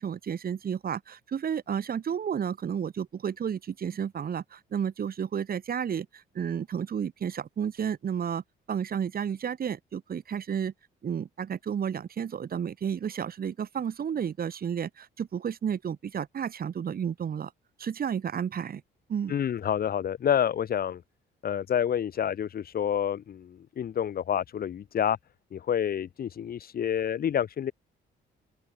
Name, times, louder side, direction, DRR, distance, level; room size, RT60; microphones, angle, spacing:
voice 1, 0.0-8.4 8.7-10.7 11.0-17.5 17.8-18.8 19.1-19.4, right 8 dB, 50° right, 1.8 m, -32 dB
voice 2, 19.3-21.0 21.4-25.2 25.5-27.7, left 9 dB, 50° left, 0.9 m, -28 dB
open air
cardioid pair, 90°, 20 cm